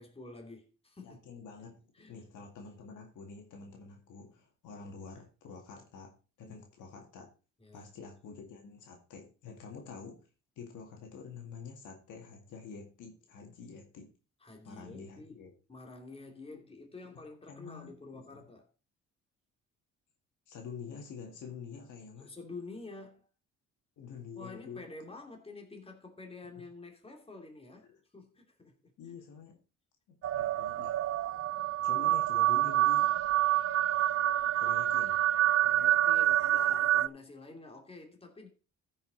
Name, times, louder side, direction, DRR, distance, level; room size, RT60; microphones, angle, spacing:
voice 1, 0.0-1.2 1.9-2.1 6.4-6.6 7.6-7.9 14.4-15.4 15.7-18.7 22.2-23.3 24.3-27.9 28.1-28.9 35.6-38.5, left 3 dB, 20° left, 2.5 m, -48 dB
voice 2, 1.0-1.8 2.1-7.3 7.7-10.2 10.6-14.1 14.6-15.5 16.5-16.6 17.1-17.2 17.5-18.4 20.5-22.3 24.0-24.8 26.6-26.7 27.8-28.0 29.0-29.6 30.1-31.0 31.8-33.1 34.6-35.2, left 5 dB, 80° left, 2.2 m, -47 dB
sound 1, 30.2-37.1, right 13 dB, 50° right, 0.5 m, -27 dB
14.5 x 5.6 x 4.0 m
cardioid pair, 90°, 30 cm